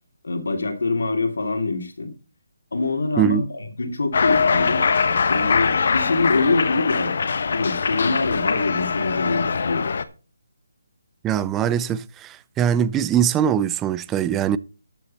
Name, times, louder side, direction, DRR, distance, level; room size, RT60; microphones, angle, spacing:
voice 1, 0.2-2.1 2.7-4.8 5.3-7.2 7.5-9.9, left 3 dB, 80° left, 2.8 m, -24 dB
Cheering, 4.1-10.0, left 5 dB, 55° left, 1.0 m, -22 dB
voice 2, 11.2-14.6, right 9 dB, 10° right, 0.4 m, -22 dB
13.5 x 6.7 x 4.2 m
hypercardioid pair, 165°, 0 cm